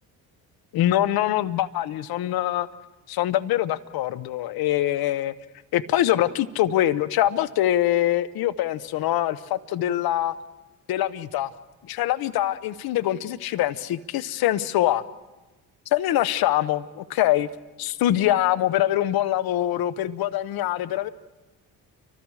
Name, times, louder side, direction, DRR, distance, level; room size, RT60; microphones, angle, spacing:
voice 1, 0.7-2.7 3.1-5.3 5.7-10.3 10.9-11.5 11.8-15.0 15.9-17.5 17.8-21.1, left 13 dB, 75° left, 16 dB, 1.0 m, -24 dB
29.5 x 25.0 x 4.8 m, 1.1 s
cardioid pair, 80°, 37 cm